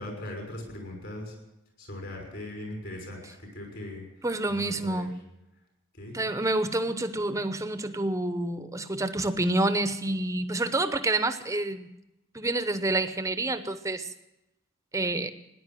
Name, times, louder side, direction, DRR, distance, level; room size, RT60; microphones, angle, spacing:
voice 1, 0.0-1.3 1.8-4.0 4.5-5.1 6.0-6.2, left 1 dB, 55° left, 1 dB, 5.9 m, -39 dB
voice 2, 4.2-5.2 6.1-11.9 12.3-14.1 14.9-15.3, right 2 dB, 15° right, 11 dB, 0.8 m, -28 dB
18.5 x 10.5 x 7.6 m, 0.92 s
head